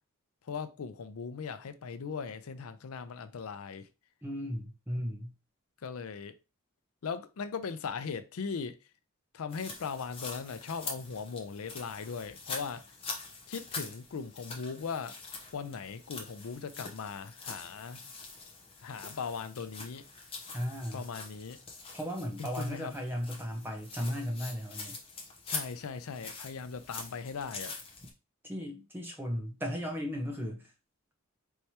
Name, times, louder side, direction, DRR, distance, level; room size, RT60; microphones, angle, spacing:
voice 1, 0.5-3.9 5.8-6.4 7.0-8.8 9.3-12.9 13.5-15.2 15.5-18.0 18.8-20.1 20.9-21.6 22.4-22.9 25.5-27.7, left 5 dB, 80° left, 0.5 m, -39 dB
voice 2, 4.2-5.3 20.5-21.0 21.9-25.0 28.4-30.7, equal, 10° right, 0.9 m, -36 dB
sound 1, 9.5-28.1, left 4 dB, 25° left, 0.8 m, -44 dB
4.5 x 3.3 x 2.8 m
head